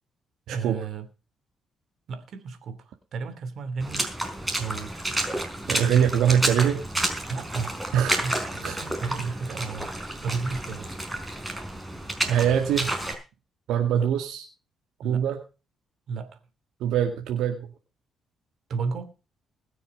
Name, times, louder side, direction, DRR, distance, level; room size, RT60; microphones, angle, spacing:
voice 1, 0.5-1.1 2.1-4.1 4.5-4.9 5.6-6.2 7.3-7.8 8.2-10.9 13.9-14.1 15.0-15.2 16.1-16.3 18.7-19.1, right 4 dB, 65° right, 2.9 m, -33 dB
Water / Splash splatter, 3.8-13.1, right 1 dB, 10° right, 4.7 m, -30 dB
voice 2, 5.7-6.8 7.9-8.2 8.6-8.8 9.2-9.3 12.3-12.9 13.7-14.4 15.0-15.4 16.8-17.7, right 9 dB, 85° right, 2.0 m, -23 dB
21.0 x 7.1 x 5.4 m
cardioid pair, 90°, 0 cm